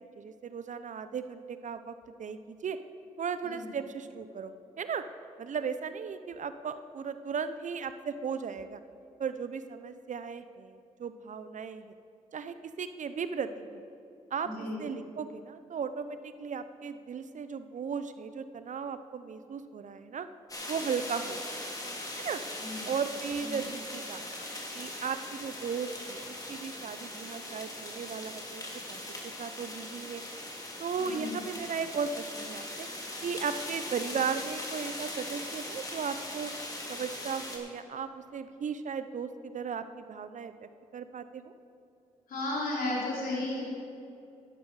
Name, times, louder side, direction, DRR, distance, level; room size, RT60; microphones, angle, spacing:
voice 1, 0.2-2.8 3.2-5.0 5.4-8.8 9.2-11.9 12.3-13.8 14.3-20.3 20.7-21.6 22.2-22.4 22.8-24.3 24.7-26.2 26.5-28.6 28.9-29.0 29.4-30.2 30.8-32.9 33.2-36.5 36.9-40.5 40.9-41.5, right 6 dB, 55° right, 11 dB, 0.7 m, -36 dB
voice 2, 14.4-14.8 22.6-22.9 23.4-23.6 31.0-31.4 42.3-43.6, left 2 dB, 75° left, -3 dB, 3.2 m, -34 dB
sound 1, 20.5-37.6, left 1 dB, 25° left, 2.6 m, -40 dB
11.0 x 11.0 x 4.8 m, 2.6 s
supercardioid pair, 45°, 15 cm